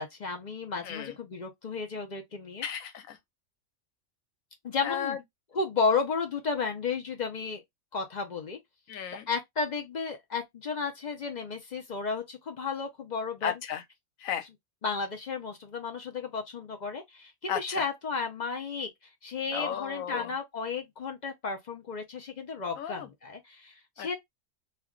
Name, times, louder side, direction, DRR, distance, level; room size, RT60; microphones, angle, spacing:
voice 1, 0.0-2.7 4.6-5.2 5.5-7.6 7.9-8.6 9.3-13.5 14.8-18.9 19.2-24.1, left 4 dB, 55° left, 0.5 m, -33 dB
voice 2, 2.6-3.2 4.8-5.2 8.9-9.3 13.4-13.8 14.2-14.5 17.5-17.9 19.5-20.3 22.8-23.1 24.0-24.2, left 9 dB, 90° left, 1.1 m, -34 dB
2.5 x 2.2 x 3.6 m
omnidirectional pair, 1.4 m